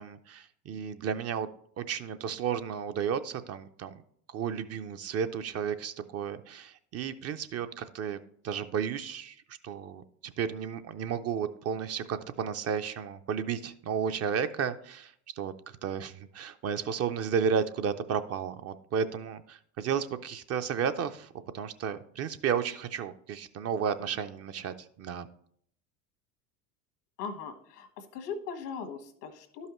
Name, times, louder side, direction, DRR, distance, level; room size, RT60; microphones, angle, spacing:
voice 1, 0.0-1.5 1.8-3.9 4.3-8.2 8.4-9.4 9.6-25.3, right 7 dB, 35° right, 10 dB, 0.5 m, -33 dB
voice 2, 27.2-29.7, left 5 dB, 85° left, 6 dB, 1.4 m, -39 dB
12.0 x 5.6 x 3.0 m, 0.64 s
hypercardioid pair, 85°, 46 cm